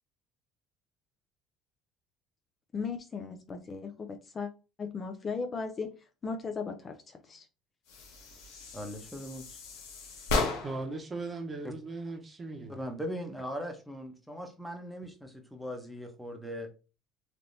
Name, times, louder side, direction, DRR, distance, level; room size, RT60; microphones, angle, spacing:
voice 1, 2.7-4.5 4.8-5.9 6.2-7.4, left 5 dB, 35° left, 6 dB, 0.4 m, -37 dB
sound 1, 7.9-11.0, left 3 dB, 90° left, 1.0 m, -35 dB
voice 2, 8.7-9.6 11.6-11.7 12.7-16.7, equal, ahead, 3 dB, 0.9 m, -39 dB
voice 3, 10.6-12.8, right 3 dB, 25° right, 2 dB, 0.9 m, -38 dB
3.3 x 2.7 x 2.6 m, 0.31 s
supercardioid pair, 105°, 0 cm